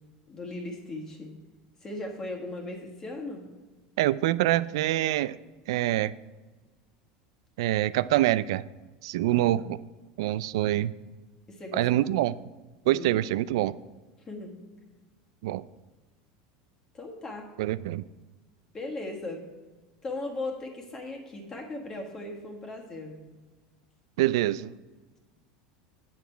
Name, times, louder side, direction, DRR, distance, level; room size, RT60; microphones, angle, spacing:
voice 1, 0.3-1.3 1.8-3.5 9.3-9.7 11.5-11.9 12.8-13.1 14.3-14.6 16.9-17.5 18.7-19.5 20.0-23.2, left 2 dB, 20° left, 1 dB, 1.5 m, -37 dB
voice 2, 4.0-5.4 5.7-6.1 7.6-8.6 9.0-9.8 10.2-10.9 11.7-12.3 12.9-13.7 15.4-15.6 17.6-18.0 24.2-24.7, right 15 dB, 80° right, 18 dB, 0.3 m, -25 dB
9.0 x 7.1 x 4.5 m, 1.2 s
supercardioid pair, 150°, 3 cm